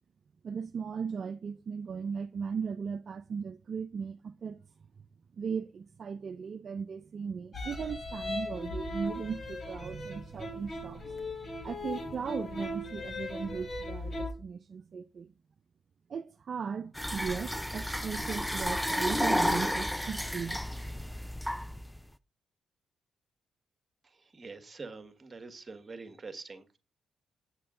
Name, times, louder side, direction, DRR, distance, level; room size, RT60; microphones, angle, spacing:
voice 1, 0.4-4.6 5.3-15.3 16.1-20.6, right 6 dB, 55° right, 0.5 m, -37 dB
sound 1, 7.5-14.3, left 1 dB, 45° left, 3.2 m, -38 dB
sound 2, 16.9-22.0, equal, ahead, 0.5 m, -32 dB
voice 2, 24.0-26.8, right 4 dB, 35° right, 1.7 m, -45 dB
8.7 x 6.6 x 3.7 m
supercardioid pair, 60°, 0 cm